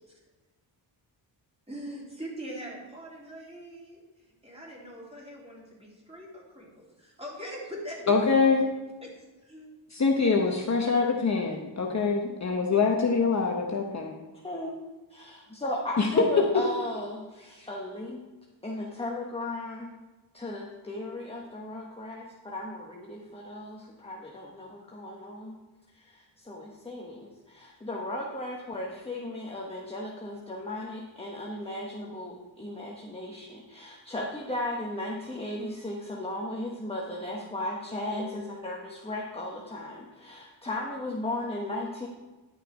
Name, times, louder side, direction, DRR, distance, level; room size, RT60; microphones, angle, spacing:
voice 1, 1.7-4.0 4.4-8.0 9.0-9.1 9.4-9.7, equal, 15° right, -4 dB, 3.4 m, -42 dB
voice 2, 8.1-8.6 9.9-14.1 16.0-16.1, left 4 dB, 35° left, 1 dB, 1.0 m, -24 dB
voice 3, 15.1-18.2 18.6-20.0 20.3-25.6 25.9-42.1, left 1 dB, 15° left, -2 dB, 1.2 m, -36 dB
11.0 x 6.6 x 4.8 m, 1.2 s
wide cardioid pair, 115°, 45 cm